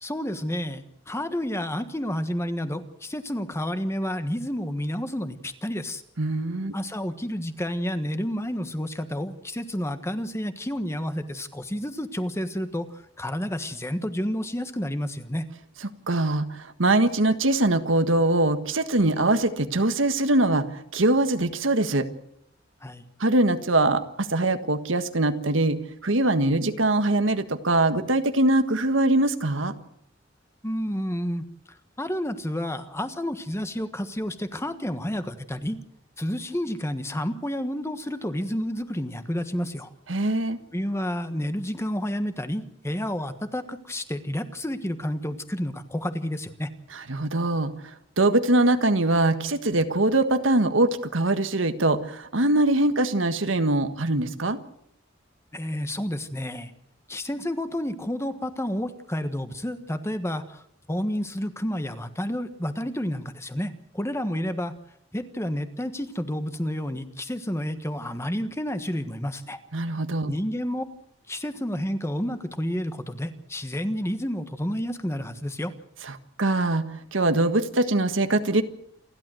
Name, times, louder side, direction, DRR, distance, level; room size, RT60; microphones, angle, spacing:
voice 1, 0.0-6.0 6.7-15.4 22.8-23.0 30.6-35.8 36.2-39.9 40.7-46.7 55.5-56.7 57.1-60.6 60.9-64.7 65.1-69.6 70.3-70.8 71.3-75.7, equal, 15° left, 9 dB, 1.4 m, -30 dB
voice 2, 6.2-6.8 16.1-22.1 23.2-29.7 40.1-40.6 46.9-47.7 48.2-54.6 69.7-70.3 76.4-76.9 77.1-78.6, right 2 dB, 90° right, 9 dB, 1.6 m, -22 dB
28.5 x 12.0 x 7.8 m, 0.74 s
head